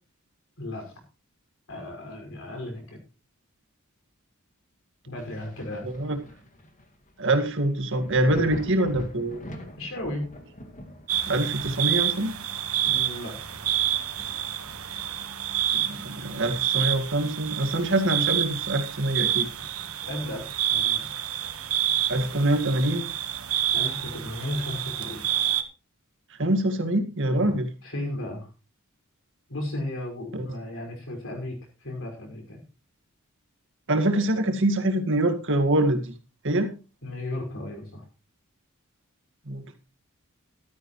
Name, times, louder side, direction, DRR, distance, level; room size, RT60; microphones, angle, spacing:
voice 1, 0.6-1.0 1.7-3.0 5.1-5.9 9.8-10.3 12.8-13.3 20.1-21.1 23.7-25.3 27.4-28.5 29.5-31.6 31.8-32.6 37.0-38.0, left 1 dB, 70° left, 2 dB, 5.7 m, -35 dB
Thunder, 5.2-16.5 16.9-18.4 18.8-18.9 19.4-20.7 22.1-22.2, left 1 dB, 35° left, 2.2 m, -45 dB
voice 2, 5.8-6.2 7.2-9.4 11.3-12.4 15.7-19.5 22.1-23.1 26.4-27.7 30.5-30.6 33.9-36.1 36.4-36.7 39.5-39.7, right 1 dB, 60° right, 7 dB, 2.0 m, -24 dB
sound 1, 11.1-25.6, right 11 dB, 80° right, 1.5 m, -28 dB
14.5 x 13.0 x 3.2 m, 0.32 s
head